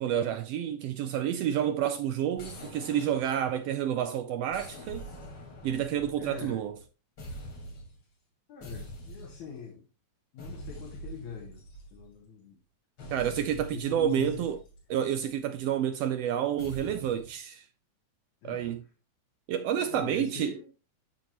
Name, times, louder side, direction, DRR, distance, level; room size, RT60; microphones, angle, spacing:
voice 1, 0.0-5.1 5.6-6.8 13.1-14.6 14.9-17.7 18.4-18.8 19.5-20.5, right 10 dB, 85° right, 1.4 m, -29 dB
sound 1, 2.4-4.0 4.5-6.9 7.2-8.0 8.6-9.6 10.4-12.3 13.0-15.4 16.6-17.3, equal, 60° left, 3.8 m, -45 dB
voice 2, 6.2-6.6 8.5-9.8 10.3-11.6 11.9-12.6 13.0-14.4 18.4-18.8 19.7-20.7, left 7 dB, 75° left, 2.9 m, -43 dB
12.5 x 4.7 x 2.9 m
omnidirectional pair, 3.3 m